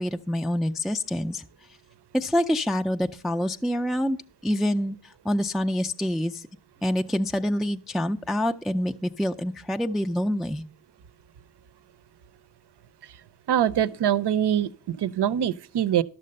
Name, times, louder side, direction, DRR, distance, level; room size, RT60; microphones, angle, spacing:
voice 1, 0.0-1.4 2.1-4.2 4.4-6.5 6.8-10.6, left 1 dB, ahead, 0.4 m, -26 dB
voice 2, 13.5-16.0, right 10 dB, 60° right, 0.6 m, -24 dB
12.0 x 6.6 x 5.3 m
cardioid pair, 70°, 47 cm